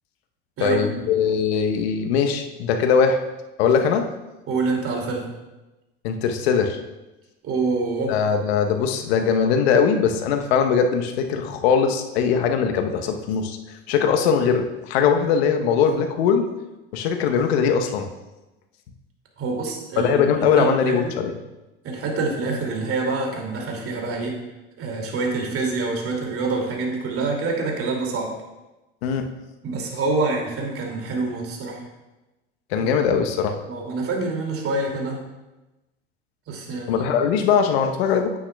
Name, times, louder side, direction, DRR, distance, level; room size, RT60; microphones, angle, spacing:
voice 1, 0.6-3.2 3.6-4.1 6.0-6.8 8.1-16.5 16.9-18.1 20.0-21.3 29.0-29.3 32.7-33.6 36.9-38.3, left 6 dB, 75° left, 5 dB, 1.0 m, -21 dB
voice 2, 4.5-5.3 7.4-8.1 19.4-20.1 20.5-21.1 21.8-24.4 24.8-28.3 29.6-31.8 32.7-32.9 33.7-35.2 36.5-37.1, right 3 dB, 45° right, 0 dB, 2.5 m, -26 dB
9.6 x 8.8 x 2.3 m, 1.0 s
hypercardioid pair, 75°, 32 cm